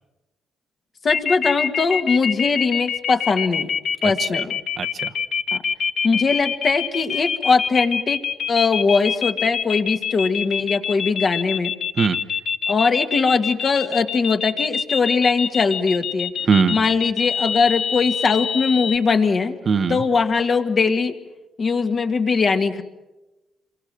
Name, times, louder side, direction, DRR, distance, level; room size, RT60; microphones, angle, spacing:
voice 1, 1.0-3.7 4.0-4.6 5.5-5.6 6.0-8.2 8.5-11.7 12.7-16.3 16.7-19.6 19.9-21.1 21.6-22.8, left 4 dB, 45° left, 5 dB, 2.1 m, -20 dB
sound 1, 1.1-19.0, left 7 dB, 60° left, 1.1 m, -25 dB
voice 2, 4.0-4.4 4.8-5.1 12.0-12.2 16.4-16.8 19.7-20.0, right 5 dB, 45° right, 9 dB, 1.2 m, -21 dB
27.0 x 23.0 x 7.7 m, 1.0 s
cardioid pair, 90°, 0 cm